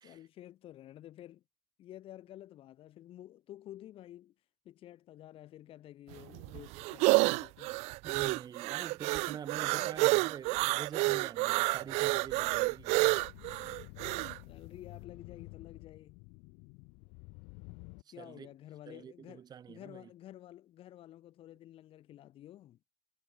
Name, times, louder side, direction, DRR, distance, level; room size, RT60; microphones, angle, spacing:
voice 1, 0.0-1.4 1.8-4.3 4.6-7.8 9.7-10.0 14.5-16.2 18.1-22.8, left 13 dB, 45° left, 1.5 m, -51 dB
sound 1, 6.1-14.4, right 25 dB, 55° right, 0.4 m, -29 dB
voice 2, 8.0-13.0 18.0-18.5 18.9-20.1, right 8 dB, 30° right, 1.5 m, -46 dB
sound 2, 11.2-18.0, left 32 dB, 65° left, 0.8 m, -51 dB
supercardioid pair, 105°, 13 cm